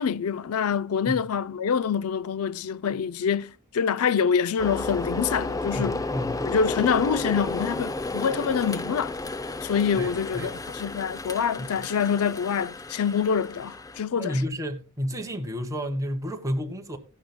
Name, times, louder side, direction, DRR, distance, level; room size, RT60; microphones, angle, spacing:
voice 1, 0.0-6.0 6.4-9.1 9.6-14.4, left 7 dB, 75° left, 0.4 m, -26 dB
sound 1, 4.6-14.0, left 2 dB, 15° left, 0.5 m, -32 dB
voice 2, 5.7-6.5 10.0-10.5 11.6-11.9 14.1-17.0, equal, 15° right, 1.4 m, -31 dB
16.5 x 11.0 x 2.2 m
head